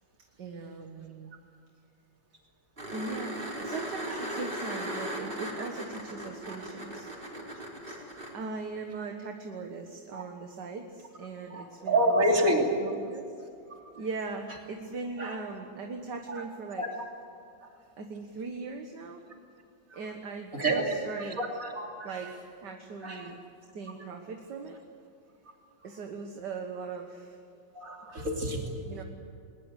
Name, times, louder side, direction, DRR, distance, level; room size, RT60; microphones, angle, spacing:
voice 1, 0.4-1.3 2.9-7.1 8.3-12.2 12.5-13.2 14.0-16.8 18.0-19.2 19.9-21.4 22.0-22.3 22.6-23.4 23.7-24.8 25.8-27.4 28.9-29.0, right 4 dB, 60° right, 4 dB, 2.0 m, -39 dB
sound 1, 2.8-8.3 11.0-11.1, right 1 dB, 25° right, 4.6 m, -37 dB
voice 2, 11.5-12.8 13.7-13.8 15.2-15.4 16.3-16.4 16.8-17.1 17.6-17.8 19.9-20.0 20.5-22.3 23.0-23.4 27.7-28.8, right 1 dB, 40° right, 1 dB, 3.4 m, -29 dB
21.0 x 21.0 x 8.2 m, 2.5 s
omnidirectional pair, 2.2 m